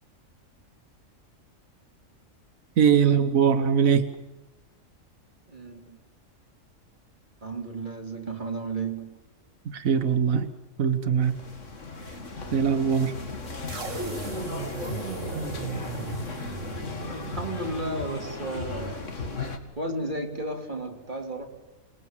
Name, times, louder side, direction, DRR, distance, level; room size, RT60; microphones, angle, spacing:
voice 1, 2.8-4.1 9.6-10.5 10.8-11.4 12.5-13.1, right 7 dB, 85° right, 9 dB, 1.5 m, -21 dB
voice 2, 5.5-6.0 7.4-9.2 17.1-19.1 19.8-21.5, right 2 dB, 35° right, 2 dB, 3.2 m, -33 dB
sound 1, 11.2-19.6, left 3 dB, 65° left, 2.6 m, -36 dB
sound 2, 13.7-18.0, right 4 dB, 70° right, 3.0 m, -36 dB
27.5 x 20.5 x 7.4 m, 1.1 s
omnidirectional pair, 1.4 m